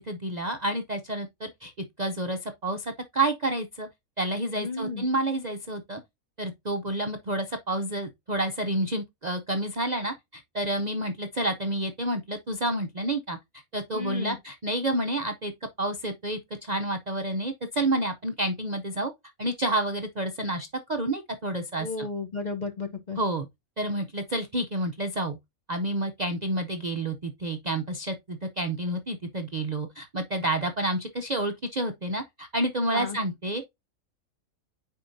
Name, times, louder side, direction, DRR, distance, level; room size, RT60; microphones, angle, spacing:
voice 1, 0.0-1.7 2.0-3.9 4.2-6.0 6.4-13.4 13.7-15.5 15.8-19.1 19.4-22.1 23.2-23.5 23.8-25.4 25.7-33.6, right 1 dB, 85° right, 0.3 m, -29 dB
voice 2, 4.5-5.1 13.9-14.4 21.8-23.2 32.9-33.2, left 3 dB, 40° left, 0.7 m, -33 dB
9.3 x 4.5 x 2.6 m
omnidirectional pair, 1.7 m